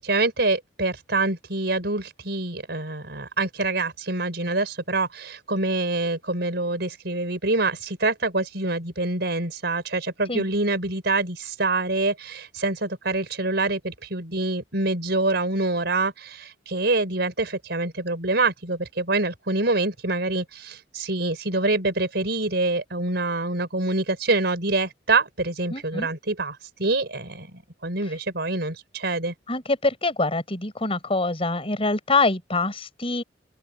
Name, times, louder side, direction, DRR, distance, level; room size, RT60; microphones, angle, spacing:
voice 1, 0.0-27.5 27.8-29.3, right 2 dB, 65° right, 5.5 m, -26 dB
voice 2, 25.7-26.1 28.0-28.1 29.5-33.2, left 3 dB, 35° left, 5.1 m, -25 dB
open air
head